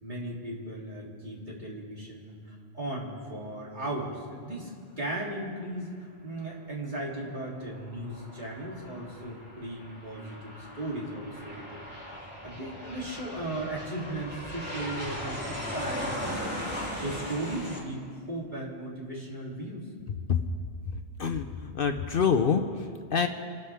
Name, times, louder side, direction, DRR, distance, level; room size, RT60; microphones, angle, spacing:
voice 1, 0.0-4.7 5.0-11.8 12.1-16.6 16.9-19.9, right 1 dB, 45° right, -5 dB, 3.2 m, -37 dB
Aircraft, 7.6-17.8, equal, 10° right, 3.4 m, -38 dB
voice 2, 21.2-23.3, left 6 dB, 55° left, 6 dB, 0.9 m, -26 dB
28.5 x 13.0 x 3.5 m, 2.2 s
omnidirectional pair, 1.1 m